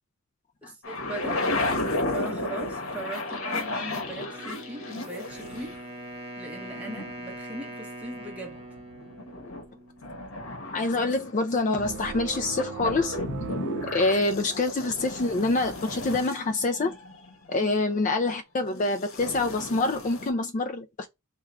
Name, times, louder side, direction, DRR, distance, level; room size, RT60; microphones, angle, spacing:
voice 1, 0.6-1.5 2.1-5.8 6.4-8.6 17.5-17.7, right 2 dB, 5° right, 0.7 m, -39 dB
sound 1, 0.8-5.8 6.6-7.7 8.1-9.7 10.0-17.5 19.0-20.3, left 2 dB, 70° left, 1.1 m, -33 dB
Wind instrument woodwind instrument, 4.3-10.3, right 1 dB, 30° right, 1.0 m, -42 dB
voice 2, 10.7-13.2 13.9-16.9 17.5-21.1, left 2 dB, 35° left, 0.4 m, -26 dB
sound 2, 11.8-15.1, right 7 dB, 55° right, 0.3 m, -40 dB
3.5 x 2.3 x 4.1 m
head